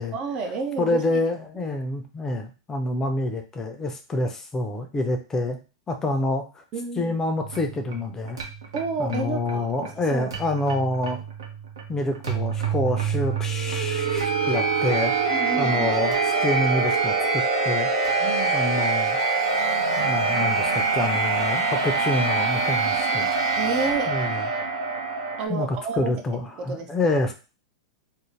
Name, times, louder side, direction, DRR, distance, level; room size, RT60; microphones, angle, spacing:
voice 1, 0.1-1.2 1.6-1.8 6.7-7.2 8.7-10.3 15.3-16.0 18.2-18.5 23.6-24.2 25.4-26.2 26.6-27.2, right 4 dB, 40° right, 6 dB, 0.5 m, -31 dB
voice 2, 0.8-5.6 5.9-6.6 7.0-8.4 9.0-11.2 11.9-15.1 15.6-17.9 18.5-19.2 20.0-23.3 24.1-24.4 25.5-27.3, left 2 dB, 20° left, 5 dB, 0.5 m, -27 dB
sound 1, 7.4-25.5, right 4 dB, 70° right, 0.7 m, -25 dB
2.5 x 2.1 x 3.2 m, 0.33 s
figure-of-eight pair, 95°, 2 cm